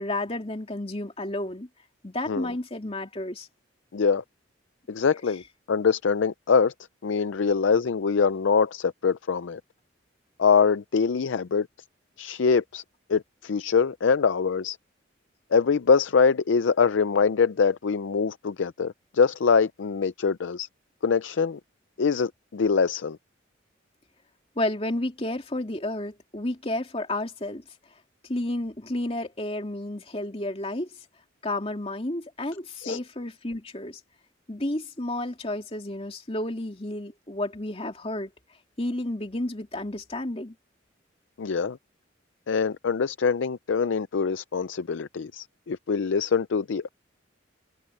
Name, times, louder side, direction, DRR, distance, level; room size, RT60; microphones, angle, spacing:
voice 1, 0.0-1.7 2.0-3.5 24.6-27.6 28.2-30.9 31.4-34.0 34.5-38.3 38.8-40.5, left 1 dB, 30° left, 2.7 m, -31 dB
voice 2, 3.9-4.2 4.9-5.4 5.7-6.7 7.0-9.6 10.4-11.7 12.2-12.8 13.1-14.8 15.5-20.7 21.0-21.6 22.0-23.2 32.8-33.0 41.4-41.8 42.5-46.9, left 5 dB, 75° left, 0.5 m, -24 dB
head